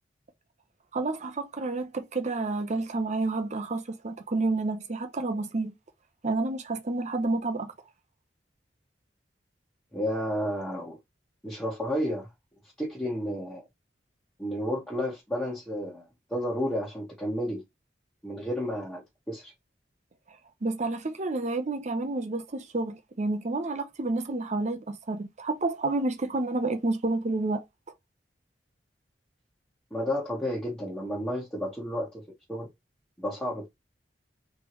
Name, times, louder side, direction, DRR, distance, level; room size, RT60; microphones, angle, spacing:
voice 1, 0.9-5.7 6.2-7.7 20.6-27.6, right 2 dB, 40° right, 0.7 m, -29 dB
voice 2, 9.9-11.0 11.4-12.3 12.8-13.6 14.4-17.6 18.2-19.5 29.9-32.2 32.5-32.7 33.2-33.7, equal, 10° left, 1.4 m, -31 dB
3.6 x 3.2 x 3.0 m
head